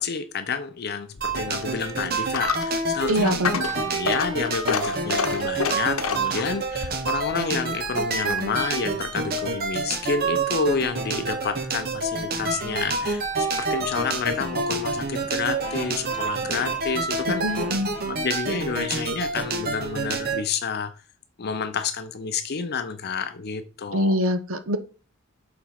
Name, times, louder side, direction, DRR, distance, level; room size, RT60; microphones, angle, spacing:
voice 1, 0.0-17.4 18.0-20.9 21.4-24.2, left 5 dB, 50° left, 0.6 m, -29 dB
Coin (dropping), 1.1-8.7, left 5 dB, 75° left, 0.9 m, -31 dB
sound 1, 1.2-20.4, right 3 dB, 50° right, 1.4 m, -28 dB
voice 2, 3.1-3.5 17.4-17.9 23.9-24.8, equal, 80° right, 1.1 m, -24 dB
sound 2, 12.4-18.0, left 3 dB, 35° left, 1.4 m, -43 dB
7.1 x 4.2 x 5.8 m
head